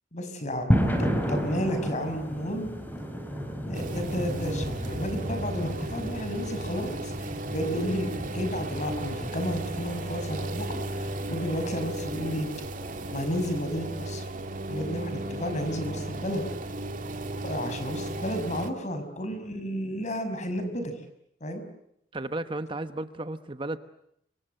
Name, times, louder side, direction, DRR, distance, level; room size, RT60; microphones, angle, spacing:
voice 1, 0.1-2.7 3.6-12.5 13.1-14.2 14.7-16.4 17.4-20.9 21.4-21.6, equal, 40° left, 9 dB, 5.8 m, -32 dB
sound 1, 0.7-13.6, equal, 10° left, 4.8 m, -33 dB
sound 2, 3.7-18.7, right 1 dB, 45° right, 2.5 m, -35 dB
voice 2, 22.1-23.8, right 2 dB, 30° right, 10 dB, 1.0 m, -33 dB
30.0 x 25.0 x 7.8 m, 0.74 s
head